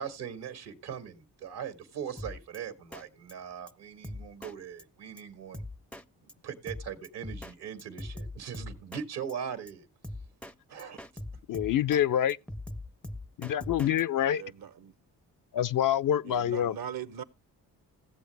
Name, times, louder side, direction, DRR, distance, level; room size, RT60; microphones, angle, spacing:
voice 1, 0.0-5.6 6.4-9.9 10.7-11.2, right 8 dB, 75° right, 1.7 m, -40 dB
Drum kit, 2.2-2.6 2.9-3.0 3.3-3.4 3.7-3.8 4.0-4.5 4.8-4.9 5.2-5.3 5.5-6.0 6.3-6.4 6.7-7.5 7.8-9.0 9.3-9.4 9.7-9.8 10.0-10.5 10.8-12.0 12.3-14.0, left 1 dB, 5° left, 0.5 m, -41 dB
voice 2, 11.5-12.4 13.4-14.4 15.5-16.8, left 10 dB, 50° left, 0.5 m, -26 dB
voice 3, 14.3-14.9 16.2-17.2, right 9 dB, 55° right, 0.9 m, -40 dB
16.0 x 7.7 x 3.3 m
supercardioid pair, 50°, 41 cm